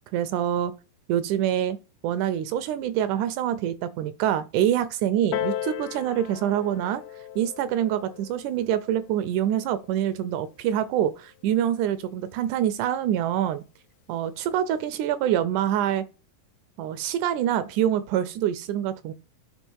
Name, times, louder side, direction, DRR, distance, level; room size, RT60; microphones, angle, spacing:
voice 1, 0.1-0.7 1.1-1.8 2.0-7.0 7.4-13.6 14.1-16.1 16.8-19.1, right 10 dB, 85° right, 1.7 m, -25 dB
Piano, 5.3-10.5 11.3-11.4, left 11 dB, 80° left, 2.1 m, -37 dB
9.7 x 3.4 x 4.6 m
omnidirectional pair, 4.0 m